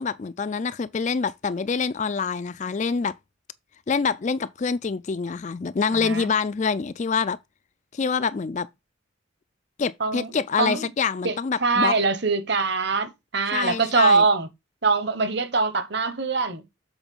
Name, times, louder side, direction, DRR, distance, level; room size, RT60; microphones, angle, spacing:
voice 1, 0.0-3.2 3.9-7.4 7.9-8.7 9.8-12.0 13.5-14.2, left 5 dB, 35° left, 0.4 m, -26 dB
voice 2, 5.9-6.3 10.0-10.3 10.6-10.9 11.2-14.5 14.8-16.6, right 4 dB, 55° right, 1.2 m, -23 dB
7.1 x 4.4 x 5.5 m
head